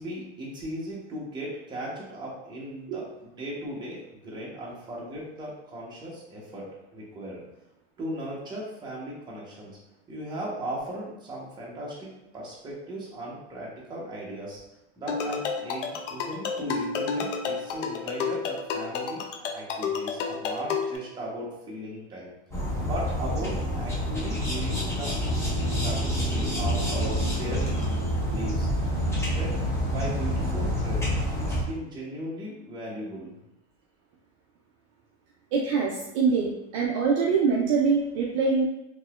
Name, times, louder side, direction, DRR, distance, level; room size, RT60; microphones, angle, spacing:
voice 1, 0.0-7.4 8.0-9.7 10.1-14.6 15.0-22.3 22.8-25.2 25.8-27.7 28.3-28.7 29.3-29.6 29.8-31.1 31.4-33.3, right 1 dB, 10° right, -5 dB, 0.9 m, -37 dB
sound 1, 15.1-21.0, left 5 dB, 80° left, 0.6 m, -31 dB
sound 2, 22.5-31.6, equal, 10° left, 0.5 m, -27 dB
voice 2, 35.5-38.6, right 5 dB, 40° right, -2 dB, 0.5 m, -24 dB
3.9 x 2.9 x 2.4 m, 0.89 s
supercardioid pair, 145°, 36 cm